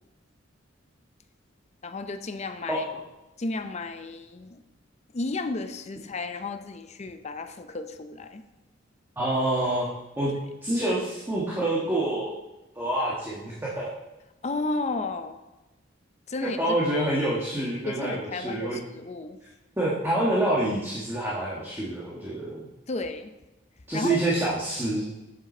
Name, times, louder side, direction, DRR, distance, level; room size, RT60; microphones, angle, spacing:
voice 1, 1.8-2.8 3.4-4.6 5.1-8.4 14.4-15.4 16.3-16.6 17.8-19.4 22.9-23.3 23.9-24.2, left 3 dB, 35° left, 9 dB, 0.6 m, -33 dB
voice 2, 9.2-9.9 10.2-10.3 10.6-12.3 12.7-13.9 16.4-18.8 19.8-22.7 23.9-25.1, right 1 dB, 10° right, -6 dB, 1.4 m, -27 dB
8.2 x 7.3 x 4.3 m, 1.0 s
head